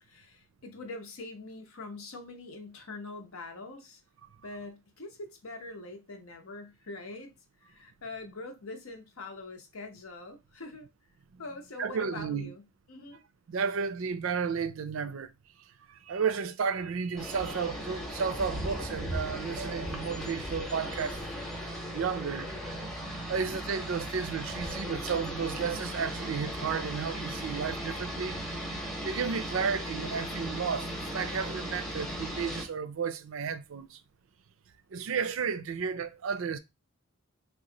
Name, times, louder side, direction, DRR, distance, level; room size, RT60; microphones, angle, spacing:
voice 1, 0.0-4.0 4.4-7.3 7.6-10.9 11.4-12.6 12.9-13.2, left 2 dB, 80° left, 0.8 m, -43 dB
voice 2, 11.8-12.5 13.5-15.3 15.9-21.2 21.9-22.5 23.3-34.0 34.9-36.6, right 6 dB, 70° right, 0.4 m, -33 dB
sound 1, 17.2-32.6, equal, ahead, 0.7 m, -37 dB
2.9 x 2.3 x 3.7 m
head